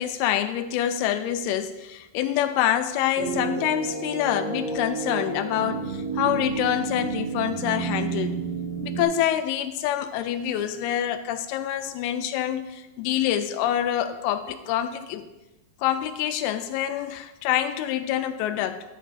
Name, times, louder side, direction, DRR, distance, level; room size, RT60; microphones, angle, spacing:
voice 1, 0.0-8.4 8.8-15.3 15.8-18.8, left 11 dB, 90° left, 9 dB, 2.6 m, -26 dB
sound 1, 3.1-9.0, right 5 dB, 80° right, 1.0 m, -30 dB
10.5 x 9.0 x 2.6 m, 1.0 s
omnidirectional pair, 4.4 m